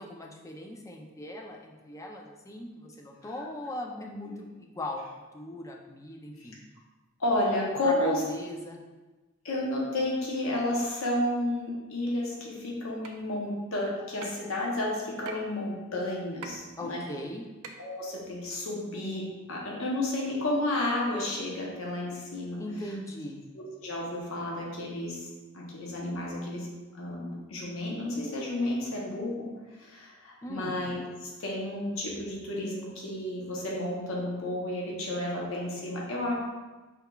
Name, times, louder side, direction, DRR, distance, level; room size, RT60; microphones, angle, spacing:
voice 1, 0.0-6.6 7.8-8.8 16.8-17.5 22.6-23.4 30.4-30.8, left 1 dB, 15° left, 1 dB, 0.4 m, -39 dB
voice 2, 7.2-8.2 9.4-17.0 17.8-22.6 23.5-25.2 25.5-26.7 26.9-29.5 29.8-36.3, left 1 dB, 65° left, -3 dB, 0.8 m, -31 dB
sound 1, 13.0-13.1 14.2-14.5 15.2-15.4 16.4-16.5 17.6-17.7, right 5 dB, 85° right, 0.4 m, -40 dB
4.2 x 3.8 x 2.3 m, 1.2 s
head